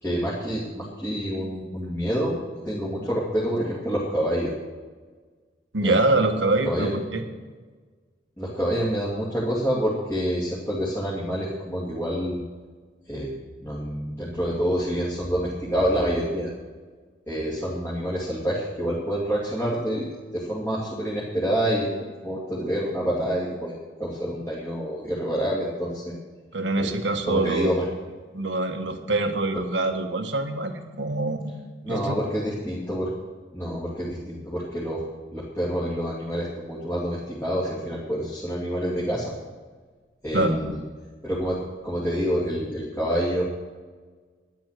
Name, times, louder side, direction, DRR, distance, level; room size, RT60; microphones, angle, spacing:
voice 1, 0.0-4.5 5.8-5.9 6.6-7.0 8.4-12.4 13.1-13.3 13.6-16.5 17.3-20.1 20.3-21.9 22.2-26.1 26.8-26.9 27.3-27.8 31.8-33.1 33.5-35.0 35.3-39.2 40.2-40.8 41.2-43.4, equal, 10° left, -7 dB, 2.6 m, -27 dB
voice 2, 5.7-7.2 26.5-27.8 28.3-31.5 31.9-32.1 40.3-40.6, right 2 dB, 85° right, 6 dB, 1.4 m, -25 dB
12.5 x 10.5 x 6.7 m, 1.4 s
head